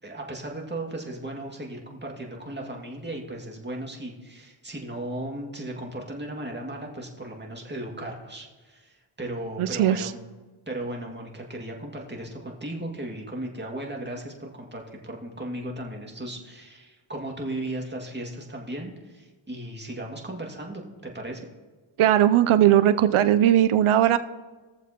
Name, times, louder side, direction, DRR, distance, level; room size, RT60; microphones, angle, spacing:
voice 1, 0.0-10.2 10.7-21.5, right 1 dB, 20° right, 0 dB, 2.1 m, -36 dB
voice 2, 9.6-10.1 22.0-24.2, right 11 dB, 80° right, 12 dB, 0.6 m, -19 dB
20.0 x 7.1 x 2.9 m, 1.3 s
cardioid pair, 40°, 49 cm